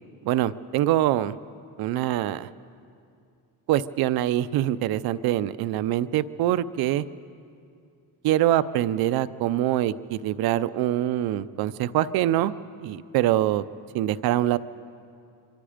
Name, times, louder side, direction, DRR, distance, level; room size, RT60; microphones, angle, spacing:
voice 1, 0.2-1.4 1.8-2.5 3.7-7.0 8.2-12.5 12.8-13.6 13.9-14.6, right 13 dB, 85° right, 14 dB, 0.7 m, -24 dB
25.5 x 24.5 x 5.1 m, 2.4 s
cardioid pair, 125°, 36 cm